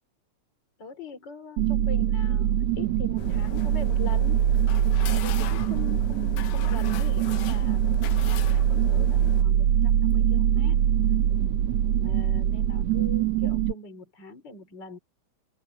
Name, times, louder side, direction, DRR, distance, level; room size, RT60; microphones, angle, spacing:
voice 1, 0.8-4.5 5.1-10.8 12.0-15.0, left 4 dB, 30° left, 3.4 m, -42 dB
sound 1, 1.6-13.7, right 10 dB, 65° right, 1.8 m, -23 dB
sound 2, 3.2-9.4, left 12 dB, 70° left, 2.2 m, -40 dB
open air
omnidirectional pair, 4.1 m